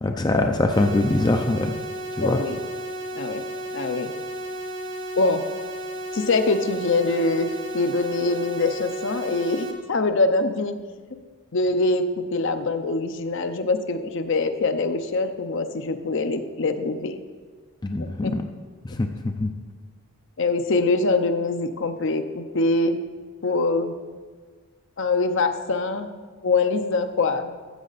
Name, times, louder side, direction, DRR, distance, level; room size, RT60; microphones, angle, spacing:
voice 1, 0.0-1.7 2.2-2.4 17.8-18.4 19.0-19.5, left 2 dB, 20° left, 5 dB, 0.4 m, -23 dB
sound 1, 0.7-9.7, equal, 60° right, 1.4 m, -33 dB
voice 2, 2.2-2.6 3.1-3.4 3.7-4.1 5.2-5.4 6.1-10.8 11.5-17.2 18.0-18.4 18.9-19.0 20.4-23.0 23.4-23.9 25.0-26.1 26.4-27.6, left 3 dB, 55° left, 8 dB, 0.6 m, -24 dB
13.0 x 7.4 x 4.1 m, 1.5 s
head